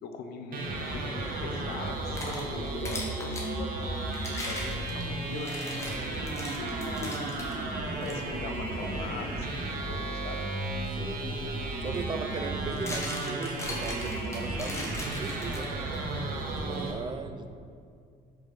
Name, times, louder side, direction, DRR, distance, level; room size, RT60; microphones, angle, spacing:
voice 1, 0.0-5.8 6.5-7.3 7.8-10.5, left 4 dB, 70° left, 5 dB, 0.7 m, -42 dB
sound 1, 0.5-16.9, right 2 dB, 60° right, 0.9 m, -34 dB
sound 2, 1.9-3.5 4.1-7.5 8.0-8.2 8.8-9.0 11.2-11.3 12.4-15.9, left 1 dB, 15° left, 1.3 m, -39 dB
voice 2, 10.9-16.0 16.5-17.6, right 4 dB, 30° right, 9 dB, 0.4 m, -38 dB
5.0 x 4.5 x 5.2 m, 2.3 s
cardioid pair, 110°, 17 cm